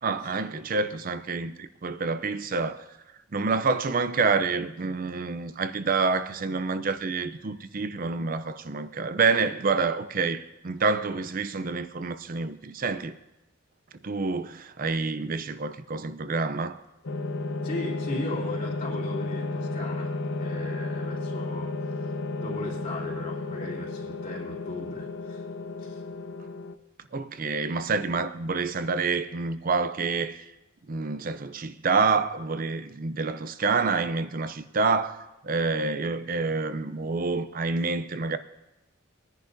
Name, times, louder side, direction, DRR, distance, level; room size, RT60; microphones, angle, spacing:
voice 1, 0.0-2.9 3.3-13.1 14.0-16.8 27.1-30.5 30.9-38.4, right 4 dB, 45° right, 0.5 m, -28 dB
sound 1, 17.0-26.8, left 2 dB, 65° left, 0.6 m, -33 dB
voice 2, 17.6-22.1 22.4-25.4 25.8-26.0, left 2 dB, 40° left, 3.4 m, -37 dB
22.0 x 10.5 x 2.7 m
head